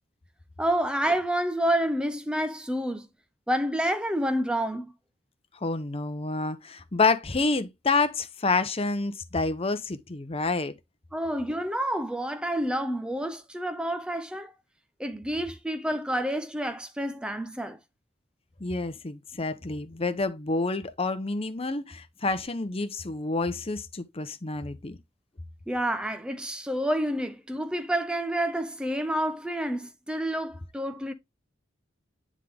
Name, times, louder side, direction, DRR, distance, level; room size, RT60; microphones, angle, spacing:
voice 1, 0.6-3.1 3.5-4.9 11.1-14.5 15.0-17.8 25.7-31.1, right 1 dB, 5° right, 0.5 m, -29 dB
voice 2, 5.6-10.7 18.6-25.0, left 3 dB, 30° left, 0.8 m, -28 dB
9.7 x 3.6 x 3.5 m
head